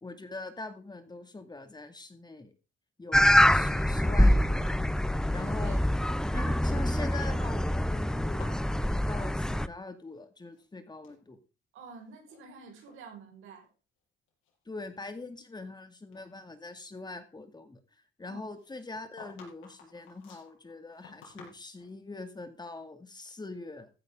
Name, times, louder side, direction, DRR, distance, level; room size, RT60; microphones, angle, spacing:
voice 1, 0.0-2.5 3.0-4.8 5.3-5.8 6.3-11.4 14.7-17.8 18.2-23.9, left 3 dB, 20° left, 8 dB, 2.2 m, -43 dB
sound 1, 3.1-9.7, left 1 dB, 5° left, 0.6 m, -25 dB
voice 2, 5.4-5.8 6.3-6.6 11.7-13.7 18.2-18.5, right 5 dB, 85° right, 3 dB, 5.2 m, -48 dB
sound 2, 8.2-10.2 10.4-11.2 11.9-12.4 12.7-13.0 13.6-13.7 14.3-15.8 16.1-16.3 18.5-22.0, left 5 dB, 85° left, 5.6 m, -54 dB
15.0 x 10.5 x 3.7 m, 0.32 s
cardioid pair, 90°, 20 cm